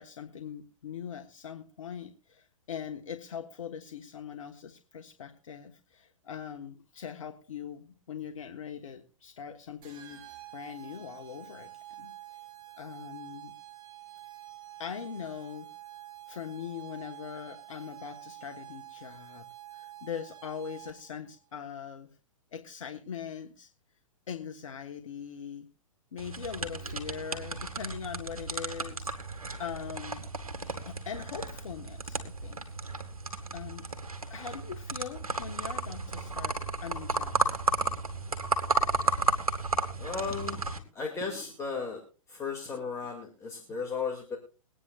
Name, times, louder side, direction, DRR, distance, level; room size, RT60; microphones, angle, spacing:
voice 1, 0.0-10.2 10.5-11.7 12.0-12.1 12.8-13.5 14.8-15.7 16.3-19.5 19.7-22.1 22.5-23.7 24.3-25.7 26.1-30.3 30.8-32.6 33.5-33.9 34.3-37.4, left 7 dB, 65° left, 5 dB, 1.5 m, -41 dB
sound 1, 9.8-21.2, right 14 dB, 25° right, 4.7 m, -48 dB
sound 2, 26.2-40.8, right 3 dB, 90° right, 1.9 m, -33 dB
voice 2, 40.0-40.7 40.9-42.0 42.3-44.4, left 5 dB, 15° left, 0 dB, 2.5 m, -35 dB
23.0 x 9.7 x 2.5 m, 0.35 s
hypercardioid pair, 120°, 18 cm